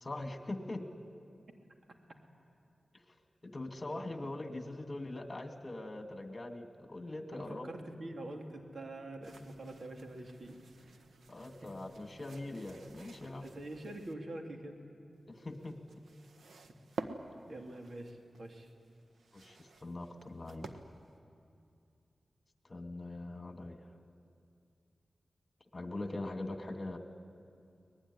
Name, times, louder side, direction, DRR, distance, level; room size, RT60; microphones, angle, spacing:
voice 1, 0.0-0.8 3.4-7.7 11.3-13.5 15.4-15.8 19.3-20.7 22.7-23.8 25.7-27.0, left 2 dB, 40° left, 5 dB, 2.4 m, -42 dB
voice 2, 7.3-11.0 11.6-11.7 13.4-14.8 16.7-16.8 17.5-18.7, right 1 dB, 65° right, 3 dB, 3.0 m, -45 dB
sound 1, 9.2-14.1 15.1-21.2, right 3 dB, 90° right, 1.4 m, -50 dB
24.0 x 20.0 x 10.0 m, 2.5 s
cardioid pair, 55°, 0 cm